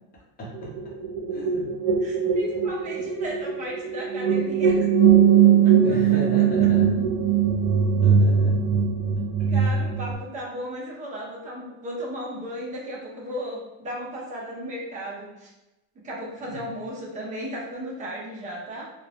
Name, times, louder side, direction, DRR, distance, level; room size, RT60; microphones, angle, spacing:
voice 1, 0.4-0.7 1.3-1.7 5.8-7.0 8.0-8.8 16.4-16.6, right 1 dB, 25° left, -5 dB, 0.7 m, -34 dB
sound 1, 0.5-10.1, right 7 dB, 80° right, 0.7 m, -20 dB
voice 2, 2.0-4.8 5.6-6.0 6.4-6.7 9.4-15.5 16.0-18.9, equal, 20° right, -4 dB, 0.6 m, -35 dB
3.1 x 2.0 x 2.4 m, 0.99 s
cardioid pair, 155°, 37 cm